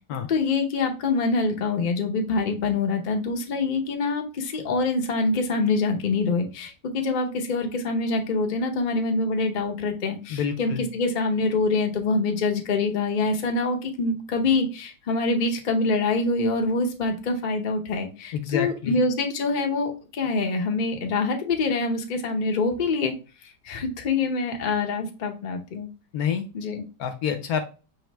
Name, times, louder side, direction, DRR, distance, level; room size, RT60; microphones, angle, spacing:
voice 1, 0.3-23.1 23.6-25.9 26.5-26.8, left 3 dB, 50° left, 2 dB, 0.5 m, -25 dB
voice 2, 10.3-10.8 18.3-19.0 26.1-26.4 27.0-27.6, left 8 dB, 70° left, 7 dB, 0.9 m, -27 dB
4.8 x 3.1 x 3.3 m, 0.33 s
omnidirectional pair, 1.9 m